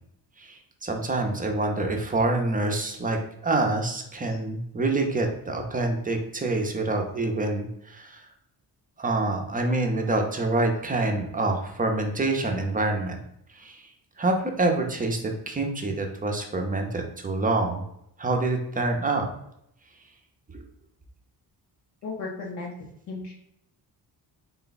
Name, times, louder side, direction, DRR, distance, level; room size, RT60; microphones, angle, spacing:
voice 1, 0.4-8.2 9.0-13.2 13.5-13.8 14.2-17.9 18.2-19.2 20.5-20.6, right 2 dB, 20° right, 2 dB, 0.5 m, -26 dB
voice 2, 22.0-22.7 23.1-23.3, left 3 dB, 75° left, -3 dB, 0.8 m, -35 dB
3.8 x 2.2 x 3.9 m, 0.78 s
cardioid pair, 115°, 41 cm